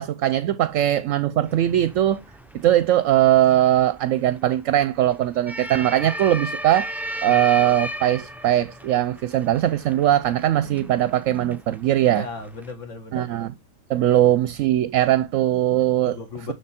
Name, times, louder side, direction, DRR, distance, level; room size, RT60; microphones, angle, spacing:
voice 1, 0.0-2.2 2.5-6.9 7.2-12.2 13.1-13.5 13.9-16.2, right 12 dB, 70° right, 0.9 m, -20 dB
sound 1, 1.5-12.7, equal, 5° right, 0.3 m, -36 dB
voice 2, 7.3-7.7 12.1-13.3 14.0-14.1 16.1-16.5, left 4 dB, 60° left, 1.6 m, -36 dB
10.0 x 3.3 x 4.3 m
omnidirectional pair, 1.5 m